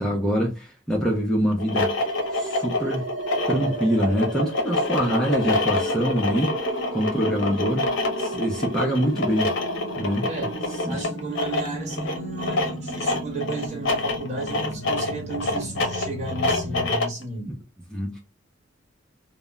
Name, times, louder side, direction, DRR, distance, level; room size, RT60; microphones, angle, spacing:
voice 1, 0.0-1.9 2.3-3.0 3.5-7.9 8.2-9.5 10.0-10.3 10.8-11.2 17.9-18.2, equal, 5° left, 0.4 m, -25 dB
sound 1, 1.5-17.2, left 2 dB, 75° left, 0.6 m, -27 dB
sound 2, 2.0-16.9, right 1 dB, 80° right, 1.0 m, -35 dB
voice 2, 10.9-17.6, right 3 dB, 40° right, 1.0 m, -34 dB
2.0 x 2.0 x 3.3 m
head